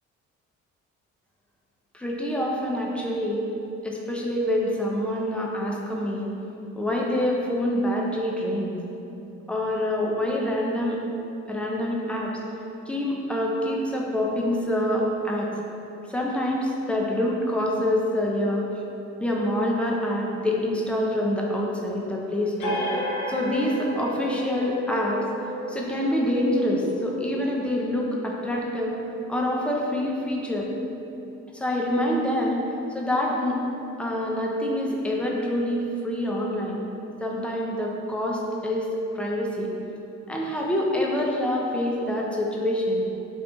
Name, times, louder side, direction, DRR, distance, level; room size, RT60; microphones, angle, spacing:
voice 1, 1.9-3.4 3.8-6.3 6.8-8.7 9.5-11.0 11.5-12.3 12.9-15.5 16.1-18.6 19.2-22.8 23.3-25.2 25.7-29.0 29.3-30.7 31.5-32.6 32.9-33.6 34.0-36.8 37.2-39.7 40.3-43.0, left 1 dB, 5° left, -3 dB, 0.4 m, -26 dB
sound 1, 22.6-29.8, equal, 80° left, 0.8 m, -33 dB
2.9 x 2.6 x 3.3 m, 2.8 s
cardioid pair, 90°, 30 cm